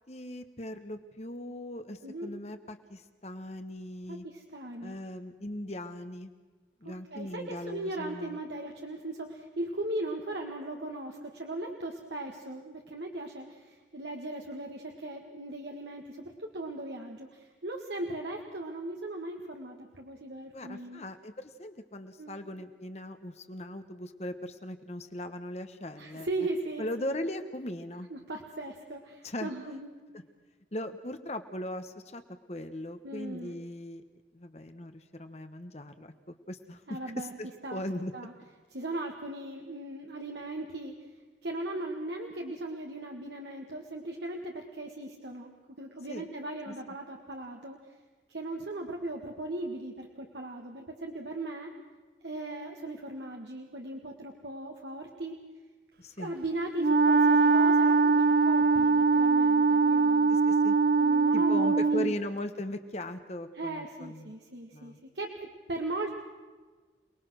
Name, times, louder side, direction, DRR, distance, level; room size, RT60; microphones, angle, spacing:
voice 1, 0.1-4.3 4.8-6.3 6.8-8.4 20.5-26.3 26.8-28.1 29.2-29.5 30.7-32.2 32.5-34.0 34.3-38.1 46.1-46.3 46.7-46.8 56.0-56.4 60.3-60.7 61.3-64.3 64.7-65.0, left 1 dB, 35° left, 8 dB, 1.1 m, -39 dB
voice 2, 4.1-5.0 6.8-21.0 22.2-22.4 26.0-26.9 28.1-29.9 33.0-33.6 36.9-37.3 37.6-37.8 38.1-38.3 38.7-41.1 41.4-47.8 48.3-51.7 52.2-55.4 56.2-60.3 61.0-62.1 63.5-66.1, right 2 dB, 70° right, 2 dB, 1.8 m, -38 dB
Wind instrument woodwind instrument, 56.8-62.2, right 4 dB, 55° right, 0.6 m, -22 dB
28.5 x 20.0 x 6.3 m, 1.4 s
head